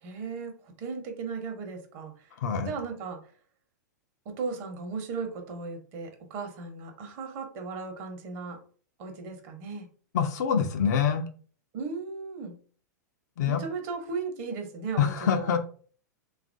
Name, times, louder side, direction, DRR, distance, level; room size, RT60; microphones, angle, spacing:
voice 1, 0.0-2.3 2.6-3.2 4.2-8.6 9.0-9.9 11.7-12.5 13.5-15.5, right 4 dB, 45° right, 4 dB, 0.8 m, -36 dB
voice 2, 2.4-2.7 10.1-11.2 13.4-13.6 15.0-15.6, left 7 dB, 65° left, 7 dB, 0.5 m, -25 dB
2.9 x 2.4 x 2.5 m, 0.44 s
hypercardioid pair, 110°, 10 cm